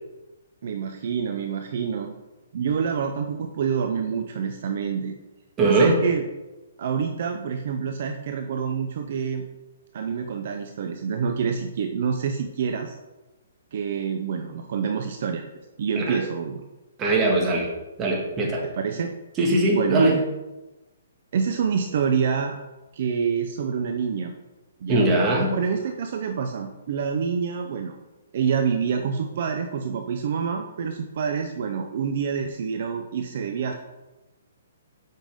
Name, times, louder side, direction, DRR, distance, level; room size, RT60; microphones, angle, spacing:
voice 1, 0.6-2.1 2.5-5.1 5.6-6.2 6.8-9.4 9.9-13.0 13.7-15.4 15.8-16.6 18.7-19.1 19.7-20.2 21.3-22.6 22.9-24.3 24.8-25.1 25.5-28.0 28.3-33.7, right 6 dB, 55° right, 5 dB, 0.6 m, -27 dB
voice 2, 5.6-5.9 15.9-16.2 17.0-17.7 18.0-18.6 19.4-20.2 24.9-25.5, right 2 dB, 20° right, -1 dB, 1.6 m, -21 dB
7.4 x 5.4 x 3.6 m, 1.1 s
hypercardioid pair, 155°, 0 cm